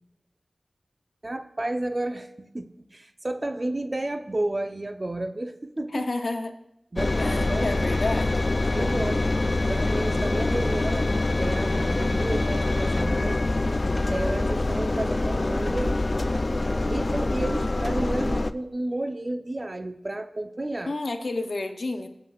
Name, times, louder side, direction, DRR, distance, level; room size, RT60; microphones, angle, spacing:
voice 1, 1.2-6.1 6.9-7.9 8.7-9.2 9.7-11.1 11.4-13.4 14.1-16.0 16.9-20.9, right 1 dB, 45° right, 7 dB, 0.8 m, -31 dB
voice 2, 5.9-6.5 7.2-8.5 9.3-9.7 20.8-22.1, left 2 dB, 75° left, 6 dB, 0.9 m, -31 dB
Engine, 7.0-18.5, left 2 dB, 50° left, 0.4 m, -25 dB
21.0 x 7.5 x 2.5 m, 0.83 s
wide cardioid pair, 45°, 0 cm